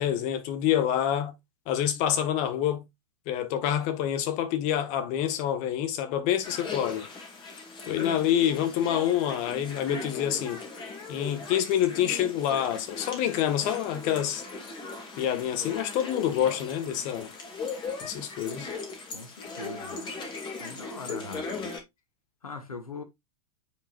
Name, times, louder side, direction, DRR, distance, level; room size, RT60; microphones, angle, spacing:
voice 1, 0.0-1.3 1.7-2.8 3.3-7.1 7.8-10.6 11.1-14.4 15.2-17.3 18.0-18.7, left 10 dB, 40° left, 1.5 m, -27 dB
sound 1, 6.4-21.8, left 3 dB, 25° left, 2.6 m, -39 dB
voice 2, 19.1-20.0 20.6-21.7 22.4-23.0, left 3 dB, 80° left, 1.4 m, -41 dB
9.1 x 5.1 x 2.5 m
figure-of-eight pair, 95°, 18 cm